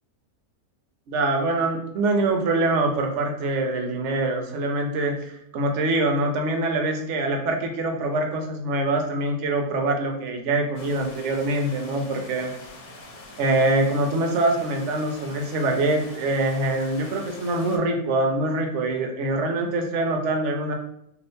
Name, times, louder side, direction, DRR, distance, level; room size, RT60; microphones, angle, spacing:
voice 1, 1.1-12.5 13.4-20.7, right 2 dB, 65° right, 3 dB, 0.8 m, -24 dB
sound 1, 10.7-17.8, left 2 dB, 80° left, 1.2 m, -44 dB
2.6 x 2.5 x 3.4 m, 0.76 s
omnidirectional pair, 1.5 m